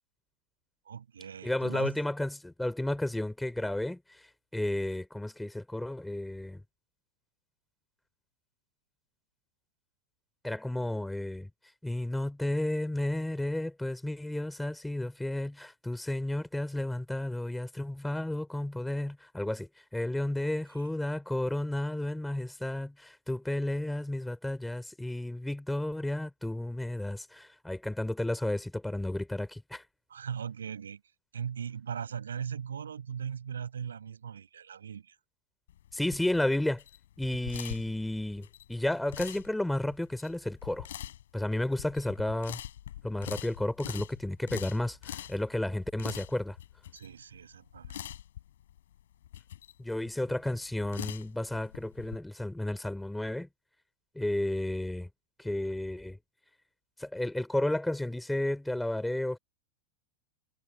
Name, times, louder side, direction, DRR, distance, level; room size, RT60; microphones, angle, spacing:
voice 1, 0.9-2.0 20.7-20.9 30.1-31.0 31.3-35.2 46.9-48.1, right 7 dB, 70° right, 6.3 m, -39 dB
voice 2, 1.4-4.2 4.5-6.6 10.4-11.5 11.8-29.8 35.9-36.8 37.2-40.9 41.3-42.6 43.0-46.6 49.8-53.5 54.1-55.1 55.4-56.2 57.0-59.4, left 1 dB, 5° left, 4.1 m, -32 dB
sound 1, 35.7-52.2, left 11 dB, 60° left, 5.7 m, -44 dB
figure-of-eight pair, 90°, 0 cm